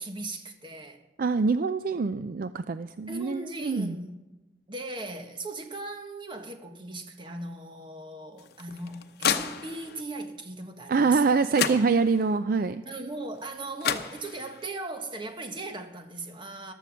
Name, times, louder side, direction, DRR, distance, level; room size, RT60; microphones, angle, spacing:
voice 1, 0.0-1.0 3.1-4.2 4.7-11.4 12.8-16.7, right 2 dB, 30° right, 1.3 m, -38 dB
voice 2, 1.2-4.0 10.9-12.8, right 4 dB, 50° right, 0.4 m, -25 dB
sound 1, 8.4-10.0 11.2-11.3 11.5-12.4 13.5-13.6 13.8-14.7, left 7 dB, 60° left, 0.9 m, -31 dB
14.5 x 12.0 x 6.3 m
head